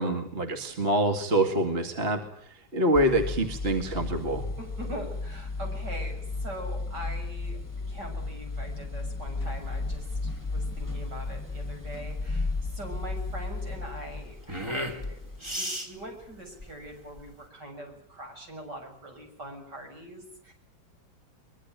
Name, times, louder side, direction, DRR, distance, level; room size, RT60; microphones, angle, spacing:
voice 1, 0.0-4.5, right 1 dB, 30° right, 6 dB, 2.3 m, -26 dB
sound 1, 2.9-15.6, left 3 dB, 10° left, 2.5 m, -34 dB
voice 2, 4.6-7.6 7.9-20.5, right 1 dB, 60° right, 3 dB, 7.5 m, -42 dB
sound 2, 9.4-17.5, equal, 15° right, 2.5 m, -38 dB
23.5 x 22.5 x 9.1 m, 0.62 s
omnidirectional pair, 2.0 m